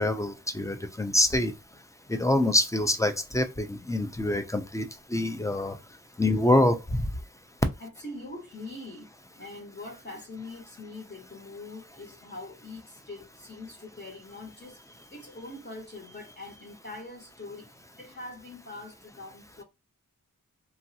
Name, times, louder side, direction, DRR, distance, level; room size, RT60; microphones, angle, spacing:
voice 1, 0.0-1.5 2.1-4.9 5.1-5.8 6.2-7.0, left 1 dB, 10° left, 0.4 m, -25 dB
voice 2, 7.8-9.1 9.4-17.7 17.9-19.6, left 2 dB, 30° left, 0.9 m, -43 dB
3.0 x 2.5 x 2.7 m
wide cardioid pair, 95°, 34 cm